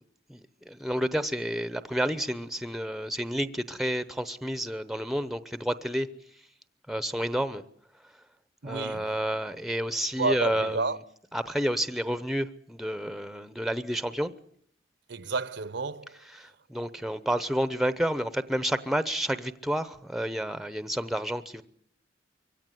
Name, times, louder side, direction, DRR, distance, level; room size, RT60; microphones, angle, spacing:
voice 1, 0.6-6.1 6.9-7.6 8.6-11.0 11.3-14.3 16.3-21.6, equal, ahead, 0.9 m, -30 dB
voice 2, 8.6-9.1 10.2-11.0 15.1-16.2, right 3 dB, 70° right, 0.9 m, -30 dB
23.5 x 17.0 x 9.5 m
head